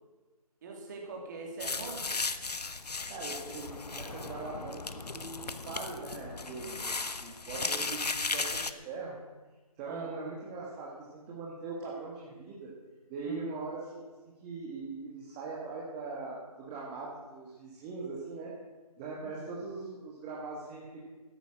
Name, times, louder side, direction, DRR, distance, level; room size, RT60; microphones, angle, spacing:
voice 1, 0.6-2.1 7.5-7.7 9.9-10.1 13.2-13.4 19.2-19.4, right 3 dB, 30° right, 1 dB, 2.8 m, -42 dB
sound 1, 1.6-8.7, left 3 dB, 85° left, 1.0 m, -36 dB
voice 2, 3.1-9.2 9.8-12.7 13.1-18.5 19.0-21.0, right 3 dB, 15° right, -5 dB, 1.5 m, -41 dB
13.5 x 10.0 x 6.2 m, 1.2 s
figure-of-eight pair, 155°, 20 cm